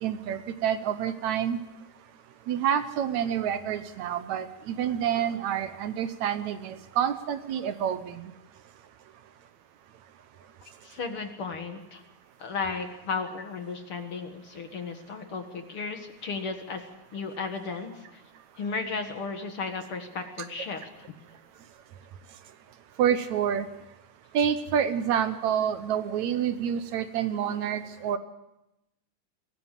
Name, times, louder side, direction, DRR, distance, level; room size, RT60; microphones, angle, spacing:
voice 1, 0.0-1.6 2.5-8.3 23.0-23.7 24.3-28.2, right 9 dB, 70° right, 11 dB, 2.1 m, -28 dB
voice 2, 10.8-12.0 12.4-18.2 18.6-21.1, left 4 dB, 50° left, 6 dB, 2.1 m, -35 dB
23.0 x 18.0 x 7.4 m, 0.92 s
omnidirectional pair, 3.6 m